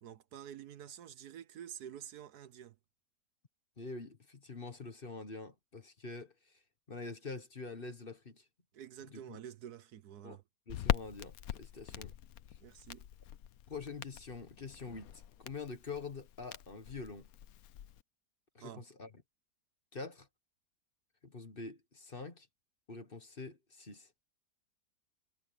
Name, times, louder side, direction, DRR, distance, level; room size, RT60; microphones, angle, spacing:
voice 1, 0.0-2.8 8.7-10.4 11.9-12.1 12.6-13.1 18.6-18.8, right 10 dB, 75° right, 1.4 m, -49 dB
voice 2, 3.8-6.6 6.9-8.5 9.1-9.4 10.2-10.4 10.7-12.1 13.7-17.3 18.5-19.1 19.9-20.3 21.2-22.5 22.9-24.1, left 4 dB, 35° left, 1.5 m, -45 dB
Crackle, 10.7-18.0, left 11 dB, 65° left, 1.1 m, -41 dB
omnidirectional pair, 1.7 m